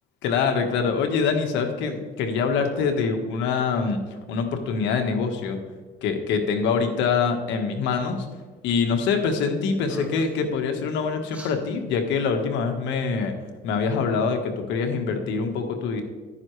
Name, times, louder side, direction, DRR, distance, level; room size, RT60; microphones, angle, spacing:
voice 1, 0.2-4.0 4.3-5.6 6.0-8.3 8.6-13.3 13.6-16.0, left 5 dB, 80° left, 5 dB, 1.4 m, -24 dB
sound 1, 9.2-9.5 9.8-10.4 11.3-11.6, right 1 dB, 5° right, 1.8 m, -39 dB
11.0 x 9.7 x 3.2 m, 1.4 s
cardioid pair, 110°, 19 cm